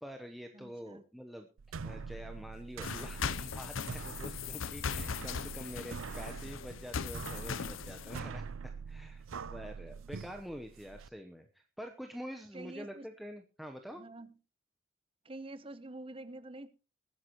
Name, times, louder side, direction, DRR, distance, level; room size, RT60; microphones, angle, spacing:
voice 1, 0.0-1.5 1.8-9.2 9.5-14.0, equal, ahead, 0.9 m, -46 dB
voice 2, 0.5-1.0 12.5-13.1 14.0-14.3 15.2-16.7, right 2 dB, 25° right, 0.8 m, -47 dB
sound 1, 1.6-11.1, right 5 dB, 85° right, 0.5 m, -44 dB
sound 2, 2.8-8.2, left 6 dB, 80° left, 0.7 m, -39 dB
20.5 x 9.7 x 3.0 m
head